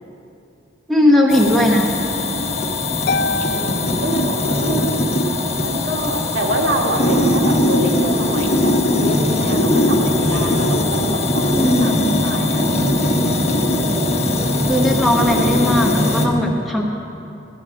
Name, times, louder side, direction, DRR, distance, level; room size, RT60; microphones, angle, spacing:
voice 1, 0.9-1.9 11.5-12.0 14.7-16.8, left 1 dB, ahead, -1 dB, 1.0 m, -17 dB
sound 1, 1.3-16.3, left 1 dB, 35° left, 1.1 m, -19 dB
Harp, 3.1-4.9, left 3 dB, 55° left, 0.4 m, -26 dB
voice 2, 3.4-4.9 5.6-13.8, right 1 dB, 80° right, -2 dB, 2.0 m, -26 dB
14.0 x 11.5 x 5.1 m, 2.7 s
head